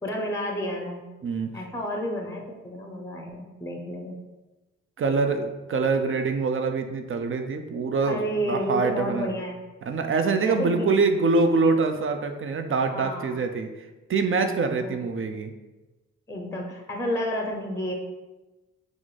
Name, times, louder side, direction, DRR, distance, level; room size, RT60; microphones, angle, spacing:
voice 1, 0.0-1.0 1.5-4.2 8.1-9.6 10.4-10.9 12.9-13.4 14.8-15.0 16.3-17.9, equal, 10° left, 1 dB, 0.6 m, -31 dB
voice 2, 5.0-8.2 8.4-9.3 9.9-13.7 14.1-15.5, right 4 dB, 45° right, 6 dB, 0.5 m, -24 dB
3.0 x 2.5 x 4.0 m, 1.1 s
supercardioid pair, 45°, 31 cm